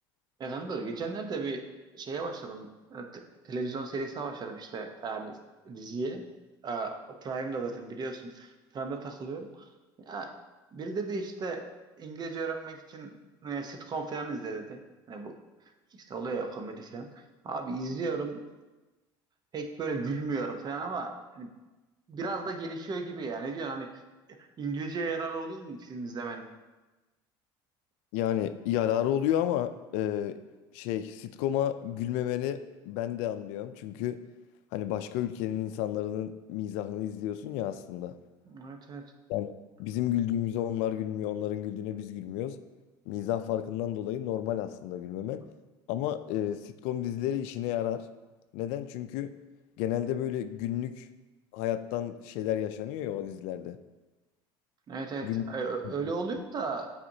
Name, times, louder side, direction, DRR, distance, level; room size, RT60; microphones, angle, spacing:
voice 1, 0.4-1.6 1.9-5.4 5.6-6.3 6.6-9.7 10.1-10.3 10.7-11.7 12.0-13.1 13.4-14.8 15.1-15.4 15.9-18.4 19.5-21.5 22.1-24.0 24.6-26.5 38.5-39.0 54.9-56.9, right 4 dB, 40° right, 5 dB, 0.8 m, -35 dB
voice 2, 28.1-30.4 30.7-32.6 32.9-34.2 34.7-38.2 39.3-42.6 43.1-45.4 45.9-48.1 48.5-49.3 49.8-51.1 51.5-53.8 55.2-55.4 55.8-55.9, left 11 dB, 75° left, 11 dB, 0.4 m, -31 dB
8.4 x 4.2 x 2.7 m, 1.2 s
supercardioid pair, 90°, 11 cm